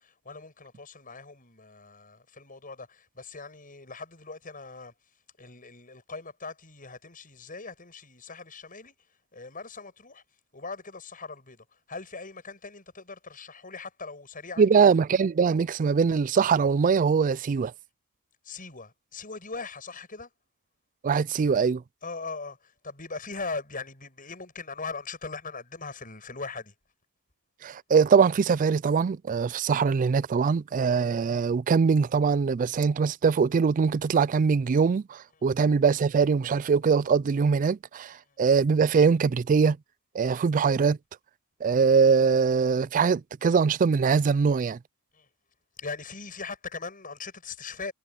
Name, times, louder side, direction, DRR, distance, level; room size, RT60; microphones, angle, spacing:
voice 1, 0.0-4.9 5.4-10.2 10.5-14.9 18.4-20.3 22.0-26.7 35.4-35.5 38.1-38.4 45.1-45.3 45.8-47.9, left 4 dB, 40° left, 7.4 m, -40 dB
voice 2, 14.6-17.7 21.0-21.8 27.6-39.8 40.1-41.0 41.6-44.8, right 5 dB, 35° right, 0.3 m, -22 dB
head